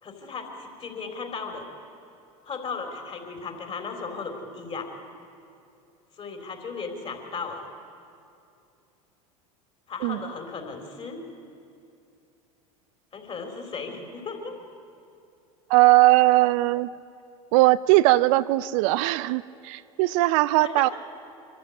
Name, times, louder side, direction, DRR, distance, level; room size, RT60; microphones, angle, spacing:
voice 1, 0.0-1.7 2.4-4.9 6.2-7.7 9.9-11.2 13.1-14.5 20.6-20.9, left 4 dB, 30° left, 3 dB, 3.9 m, -36 dB
voice 2, 15.7-16.9 17.5-20.9, right 19 dB, 65° right, 16 dB, 0.5 m, -19 dB
24.0 x 13.5 x 8.6 m, 2.6 s
hypercardioid pair, 90°, 18 cm